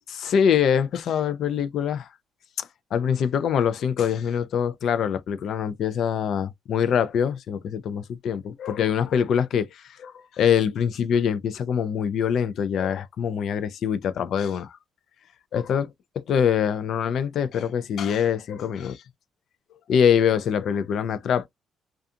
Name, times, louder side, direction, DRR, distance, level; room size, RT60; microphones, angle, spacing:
voice 1, 0.1-2.1 2.6-14.8 15.5-19.0 19.9-21.5, left 8 dB, 70° left, 0.4 m, -24 dB
2.4 x 2.3 x 2.6 m
cardioid pair, 90°, 0 cm